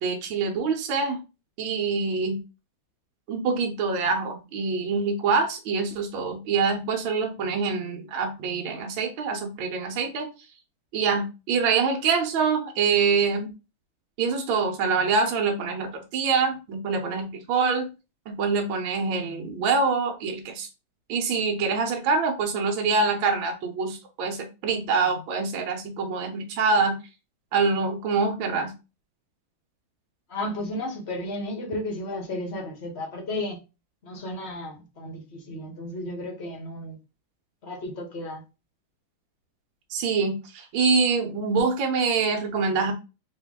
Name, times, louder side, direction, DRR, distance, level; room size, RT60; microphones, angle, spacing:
voice 1, 0.0-1.2 1.6-2.4 3.3-10.3 10.9-13.5 14.2-17.9 18.3-20.7 21.1-27.0 27.5-28.7 39.9-42.9, right 4 dB, 75° right, 1.6 m, -25 dB
voice 2, 30.3-33.6 34.0-37.0 37.6-38.4, left 1 dB, 40° left, 1.0 m, -33 dB
4.5 x 2.6 x 3.6 m
omnidirectional pair, 2.2 m